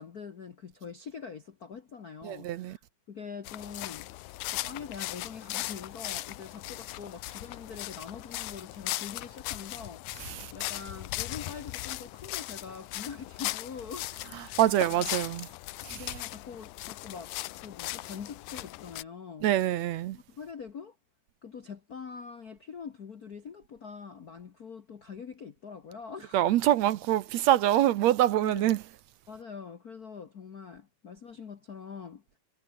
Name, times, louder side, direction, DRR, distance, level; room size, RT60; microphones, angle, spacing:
voice 1, 0.0-2.8 3.1-4.1 4.5-15.1 15.9-19.5 20.1-21.0 21.4-26.4 28.4-28.8 29.3-32.4, left 6 dB, 55° left, 1.0 m, -44 dB
voice 2, 2.2-2.8 10.2-10.5 14.6-15.5 15.8-16.1 19.4-20.2 26.3-28.8, right 13 dB, 70° right, 1.9 m, -25 dB
sound 1, 3.4-19.0, left 18 dB, 90° left, 2.3 m, -38 dB
omnidirectional pair, 3.5 m